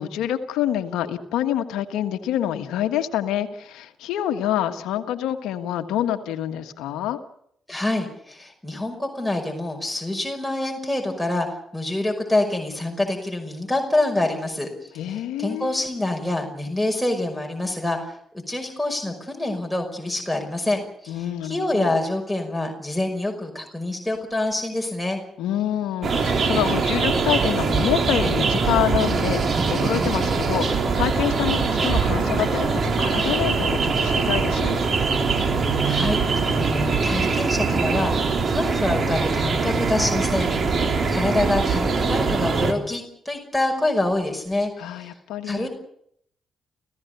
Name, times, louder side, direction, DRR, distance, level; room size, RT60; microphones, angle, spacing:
voice 1, 0.0-7.2 14.9-15.8 21.1-22.0 25.4-34.8 44.8-45.7, left 11 dB, 75° left, 8 dB, 1.5 m, -27 dB
voice 2, 7.7-11.5 11.7-25.2 35.8-45.1 45.4-45.7, left 2 dB, ahead, 1 dB, 5.6 m, -26 dB
sound 1, 26.0-42.7, right 4 dB, 50° right, 3.4 m, -22 dB
29.5 x 16.0 x 6.9 m, 0.71 s
hypercardioid pair, 40°, 0 cm